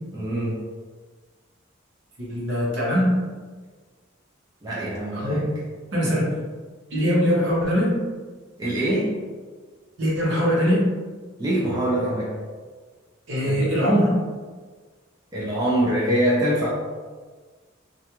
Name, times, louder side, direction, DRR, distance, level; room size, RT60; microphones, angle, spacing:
voice 1, 0.1-0.6 4.6-5.5 8.6-9.2 11.4-12.3 13.4-13.6 15.3-16.7, right 1 dB, 20° right, -7 dB, 0.4 m, -24 dB
voice 2, 2.2-3.2 5.2-5.4 5.9-6.3 6.9-8.0 10.0-10.9 13.3-14.2, equal, 65° right, -6 dB, 0.9 m, -21 dB
2.5 x 2.2 x 2.9 m, 1.4 s
head